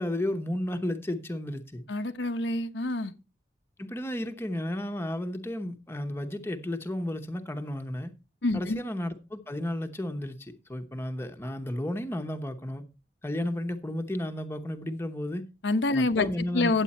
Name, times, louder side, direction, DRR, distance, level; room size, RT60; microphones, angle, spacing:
voice 1, 0.0-1.8 3.8-8.1 8.5-12.8 13.2-15.5 15.9-16.8, left 1 dB, 15° left, 0.9 m, -33 dB
voice 2, 1.9-3.1 8.4-8.8 15.6-16.3 16.5-16.8, left 2 dB, 90° left, 1.0 m, -26 dB
9.8 x 8.2 x 4.2 m
head